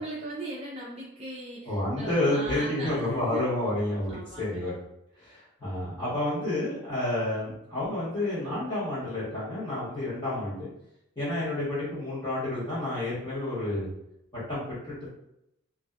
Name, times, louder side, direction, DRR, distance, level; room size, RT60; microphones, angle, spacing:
voice 1, 0.0-3.4 4.1-4.7, right 1 dB, 30° right, -5 dB, 0.3 m, -39 dB
voice 2, 1.6-4.7 5.2-10.7 11.2-13.9 14.3-15.1, left 1 dB, 20° left, -10 dB, 1.1 m, -30 dB
2.5 x 2.2 x 2.3 m, 0.82 s
head